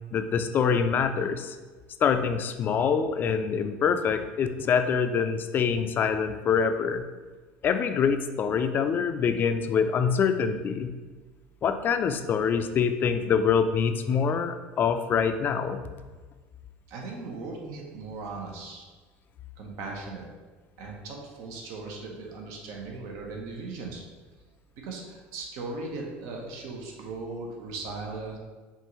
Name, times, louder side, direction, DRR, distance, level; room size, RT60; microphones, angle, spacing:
voice 1, 0.1-1.5 2.0-7.0 7.6-10.9 11.6-15.8, left 6 dB, 40° left, 8 dB, 0.4 m, -25 dB
voice 2, 16.9-18.8 19.6-20.3 20.8-24.0 24.8-28.4, right 3 dB, 70° right, 0 dB, 0.9 m, -38 dB
5.4 x 2.5 x 3.0 m, 1.3 s
supercardioid pair, 110°, 5 cm